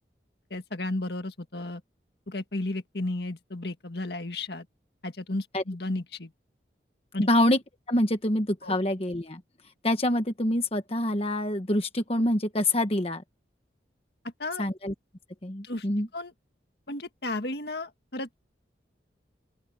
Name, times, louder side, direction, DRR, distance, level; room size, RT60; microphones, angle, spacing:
voice 1, 0.5-1.8 2.3-4.7 5.0-6.3 7.1-7.3 8.6-8.8 14.4-14.7 15.6-15.9 16.1-16.3 16.9-18.4, left 2 dB, 60° left, 1.9 m, -33 dB
voice 2, 7.3-7.6 7.9-9.4 9.8-13.2 14.6-14.9 15.4-16.1, left 1 dB, 30° left, 1.3 m, -26 dB
open air
head